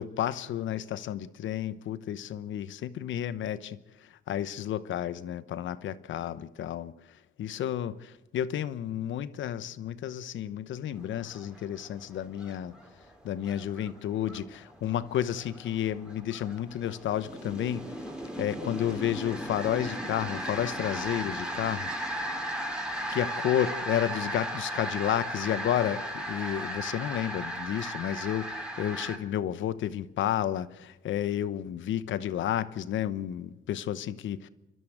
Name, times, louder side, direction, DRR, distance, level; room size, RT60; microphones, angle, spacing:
voice 1, 0.0-3.8 4.3-6.9 7.4-12.7 13.2-17.9 18.4-21.9 23.1-34.5, left 11 dB, 75° left, 1.0 m, -31 dB
sound 1, 11.1-29.2, right 1 dB, 5° right, 3.6 m, -36 dB
29.5 x 12.5 x 8.0 m
cardioid pair, 90°, 20 cm